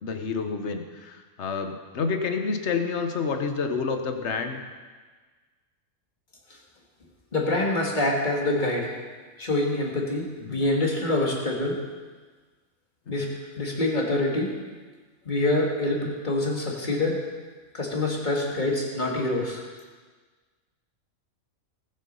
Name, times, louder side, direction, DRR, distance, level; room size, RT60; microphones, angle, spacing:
voice 1, 0.0-4.6 10.4-10.6 18.6-18.8, left 5 dB, 55° left, 6 dB, 1.4 m, -29 dB
voice 2, 7.3-8.9 9.4-11.8 13.1-13.3 13.6-14.5 15.3-17.3 17.7-19.6, left 2 dB, 35° left, -2 dB, 2.3 m, -26 dB
18.5 x 7.8 x 5.5 m, 1.4 s
omnidirectional pair, 1.4 m